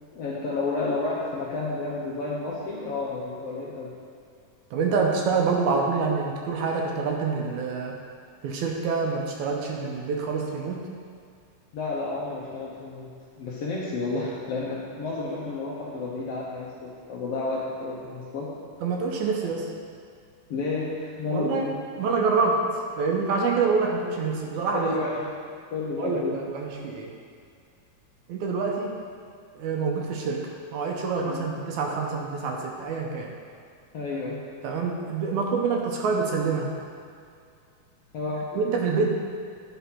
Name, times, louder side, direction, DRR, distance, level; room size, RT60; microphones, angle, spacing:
voice 1, 0.1-3.9 11.7-13.1 13.4-18.5 20.5-21.8 24.7-25.1 25.7-26.4 31.2-31.5 33.9-34.4 38.1-38.4, left 3 dB, 70° left, -5 dB, 1.6 m, -31 dB
voice 2, 4.7-8.0 8.4-10.9 18.8-19.7 21.3-21.7 22.0-22.7 23.0-24.9 26.0-27.1 28.3-29.0 29.5-33.3 34.6-36.8 38.5-39.1, right 4 dB, 75° right, 0 dB, 2.0 m, -26 dB
10.0 x 4.1 x 5.6 m, 2.3 s
omnidirectional pair, 3.7 m